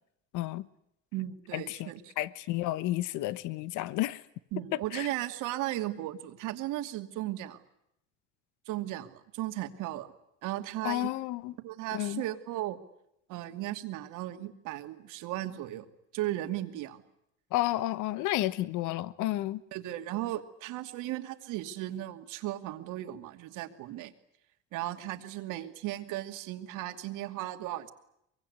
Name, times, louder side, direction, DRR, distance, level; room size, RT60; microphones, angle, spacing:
voice 1, 0.3-0.7 1.5-1.9 2.2-4.2 4.9-5.1 10.8-11.5 11.9-12.2 17.5-19.6, left 15 dB, 70° left, 1.3 m, -31 dB
voice 2, 1.1-2.1 4.5-7.6 8.7-10.1 10.4-11.1 11.6-12.8 13.3-15.9 16.1-17.0 19.7-24.1 24.7-27.9, right 15 dB, 75° right, 2.6 m, -36 dB
24.0 x 23.0 x 9.6 m
cardioid pair, 105°, 31 cm